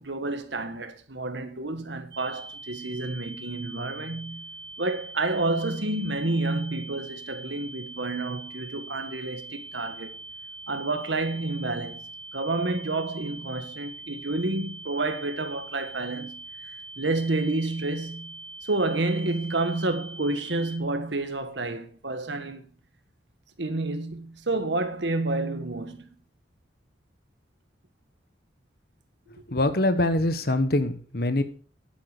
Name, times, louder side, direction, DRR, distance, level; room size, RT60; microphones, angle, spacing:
voice 1, 0.0-4.5 4.8-10.1 10.7-16.4 17.0-22.7 23.6-26.1, right 2 dB, 75° right, 1.6 m, -29 dB
sound 1, 2.1-20.8, right 2 dB, 25° right, 2.0 m, -43 dB
voice 2, 29.5-31.4, left 1 dB, 55° left, 1.4 m, -24 dB
10.5 x 9.8 x 5.0 m
head